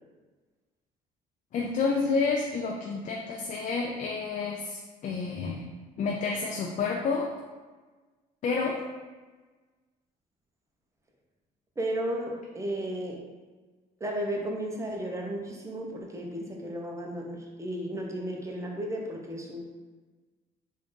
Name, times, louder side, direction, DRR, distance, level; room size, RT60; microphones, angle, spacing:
voice 1, 1.5-5.6 6.0-7.3 8.4-8.8, left 4 dB, 45° left, 0 dB, 0.4 m, -29 dB
voice 2, 11.8-13.2 14.0-19.7, right 1 dB, 15° right, 0 dB, 0.7 m, -34 dB
3.5 x 2.6 x 3.7 m, 1.3 s
cardioid pair, 110°, 17 cm